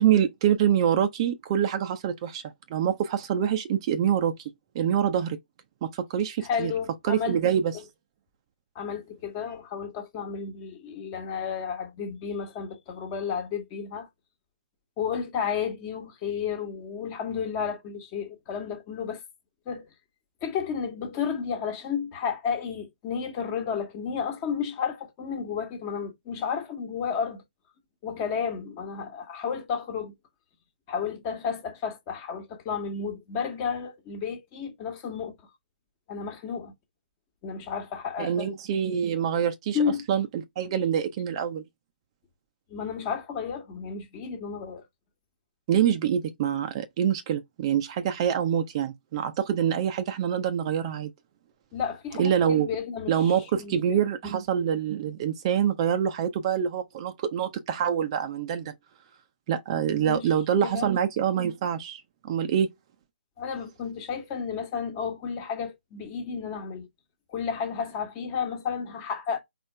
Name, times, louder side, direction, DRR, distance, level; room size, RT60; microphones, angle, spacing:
voice 1, 0.0-4.3 4.7-5.4 5.8-6.7 7.0-7.9 38.2-39.8 40.1-41.6 45.7-51.1 52.2-52.7 53.1-58.7 59.5-62.7, right 9 dB, 30° right, 0.6 m, -25 dB
voice 2, 6.4-7.8 8.7-14.1 15.0-19.2 19.7-19.9 20.4-27.4 28.0-30.1 30.9-35.3 36.1-36.7 37.4-38.5 39.7-40.0 42.7-44.8 51.7-54.0 60.0-60.3 60.6-60.9 63.4-66.9 67.3-69.4, left 6 dB, 25° left, 1.3 m, -32 dB
4.3 x 3.5 x 3.3 m
figure-of-eight pair, 140°, 6 cm